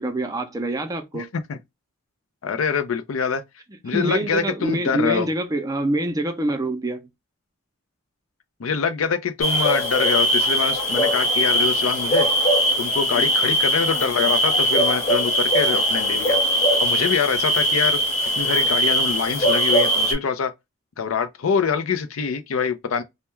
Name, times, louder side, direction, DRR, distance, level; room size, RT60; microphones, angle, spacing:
voice 1, 0.0-1.3 3.9-7.0 13.1-13.3, right 1 dB, 20° right, 0.4 m, -25 dB
voice 2, 1.1-1.6 2.4-3.4 3.8-5.3 8.6-12.3 12.8-16.4 16.8-18.0 18.4-20.5 21.0-23.0, left 6 dB, 90° left, 0.5 m, -24 dB
sound 1, 9.4-20.1, equal, 35° left, 0.9 m, -20 dB
2.2 x 2.1 x 2.9 m
head